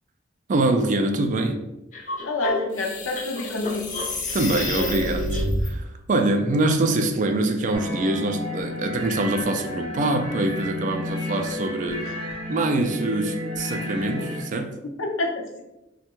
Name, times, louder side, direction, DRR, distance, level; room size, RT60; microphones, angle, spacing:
voice 1, 0.5-1.6 4.3-12.0 12.5-14.8, right 2 dB, 40° right, 6 dB, 0.3 m, -24 dB
sound 1, 1.9-5.7, left 1 dB, 40° left, 0.5 m, -28 dB
voice 2, 2.2-3.9 12.0-12.1 15.0-15.6, left 2 dB, 80° left, 0 dB, 0.7 m, -28 dB
sound 2, 7.7-14.4, left 1 dB, 25° right, 0.7 m, -32 dB
3.3 x 2.2 x 3.0 m, 0.92 s
head